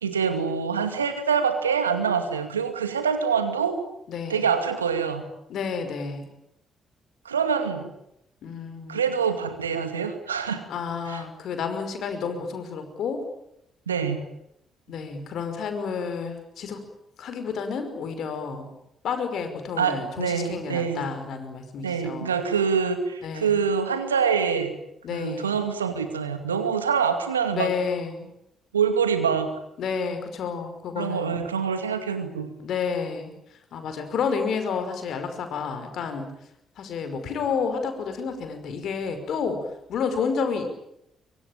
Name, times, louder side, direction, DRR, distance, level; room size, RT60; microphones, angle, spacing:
voice 1, 0.0-3.8 4.3-5.3 7.2-7.9 8.9-10.6 11.1-11.2 13.9-14.2 19.8-21.1 21.8-24.7 25.1-27.7 28.7-29.5 31.0-32.5, right 6 dB, 90° right, 8 dB, 2.3 m, -25 dB
voice 2, 4.1-4.5 5.5-6.3 8.4-9.0 10.7-13.3 14.9-16.8 17.2-18.7 19.0-22.3 23.2-23.6 25.0-25.6 27.5-28.3 29.8-31.4 32.6-33.3 33.7-36.3 36.8-39.6 39.9-40.7, left 5 dB, 60° left, 7 dB, 5.5 m, -30 dB
25.0 x 24.5 x 9.0 m, 0.79 s
figure-of-eight pair, 40°, 0 cm